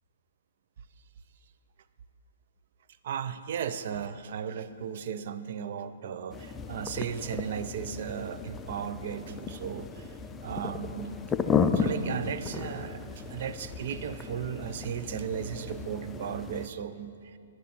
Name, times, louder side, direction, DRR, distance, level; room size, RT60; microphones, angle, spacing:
voice 1, 3.0-10.1 10.4-11.2 11.7-17.2, right 8 dB, 55° right, 12 dB, 0.5 m, -36 dB
sound 1, 6.3-16.7, left 5 dB, 10° left, 0.4 m, -34 dB
11.0 x 10.5 x 4.4 m, 2.5 s
hypercardioid pair, 150°, 0 cm